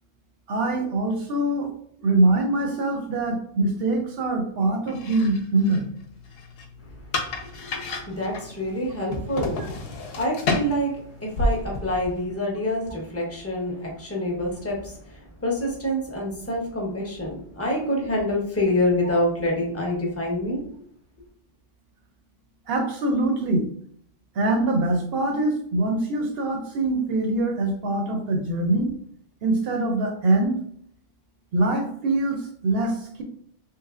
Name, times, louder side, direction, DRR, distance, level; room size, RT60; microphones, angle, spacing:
voice 1, 0.5-1.7 2.0-5.9 19.0-19.1 22.7-23.7 24.4-28.9 29.4-30.6 31.5-33.2, right 2 dB, 60° right, 3 dB, 0.7 m, -23 dB
sound 1, 4.9-12.3, left 2 dB, 60° left, 0.7 m, -31 dB
voice 2, 7.4-9.7 10.1-15.0 15.4-20.6, left 1 dB, 15° left, -2 dB, 0.5 m, -26 dB
3.1 x 2.8 x 2.4 m, 0.65 s
omnidirectional pair, 1.2 m